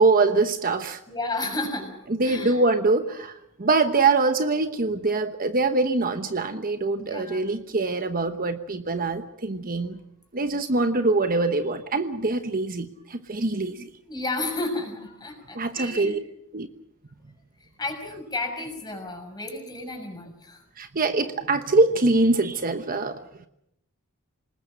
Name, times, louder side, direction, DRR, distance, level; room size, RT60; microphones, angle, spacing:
voice 1, 0.0-1.0 2.1-10.0 10.3-13.9 15.5-16.2 16.5-16.7 20.8-23.2, right 3 dB, 40° right, 8 dB, 1.1 m, -23 dB
voice 2, 1.1-1.9 2.2-2.6 6.9-7.5 14.1-16.2 17.6-20.6, left 2 dB, 20° left, 4 dB, 6.3 m, -32 dB
27.5 x 20.0 x 6.4 m, 0.78 s
head